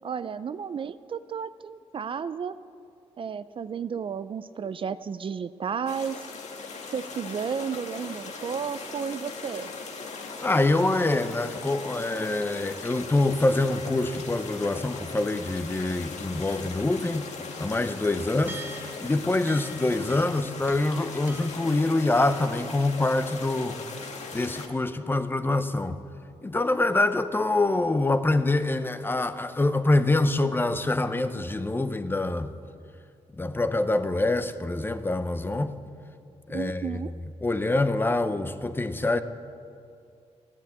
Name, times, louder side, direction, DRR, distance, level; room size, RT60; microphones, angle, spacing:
voice 1, 0.0-2.6 3.2-6.2 6.9-9.7 36.5-37.1, right 7 dB, 50° right, 0.4 m, -33 dB
sound 1, 5.9-24.7, left 4 dB, 80° left, 1.5 m, -39 dB
voice 2, 10.4-17.3 17.6-23.8 24.3-26.0 26.4-32.5 33.3-35.7 36.5-37.0 37.4-39.2, left 2 dB, 20° left, 0.7 m, -25 dB
sound 2, 16.0-16.9 17.1-17.2 18.2-19.0 19.5-20.4 20.7-21.0 21.3-21.7, right 2 dB, 20° right, 1.2 m, -45 dB
13.5 x 11.0 x 8.2 m
cardioid pair, 100°, 12 cm